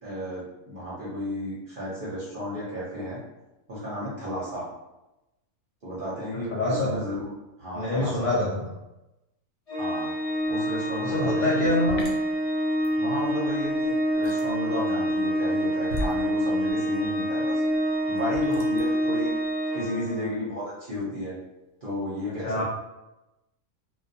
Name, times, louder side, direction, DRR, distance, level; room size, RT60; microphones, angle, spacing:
voice 1, 0.0-3.2 3.7-4.7 5.8-7.3 7.6-8.4 9.8-10.1 10.5-11.7 11.9-12.0 13.0-17.6 18.1-19.3 19.7-21.4 21.8-22.6, left 1 dB, 50° right, -7 dB, 0.6 m, -33 dB
voice 2, 6.5-6.9 7.7-8.7 11.0-12.0 22.3-22.6, left 1 dB, 70° left, -7 dB, 0.4 m, -26 dB
Organ, 9.7-20.4, equal, 35° left, 0.7 m, -27 dB
sound 1, 10.4-10.6 10.8-19.6, left 1 dB, 90° left, 1.1 m, -38 dB
2.3 x 2.2 x 2.6 m, 0.96 s
omnidirectional pair, 1.5 m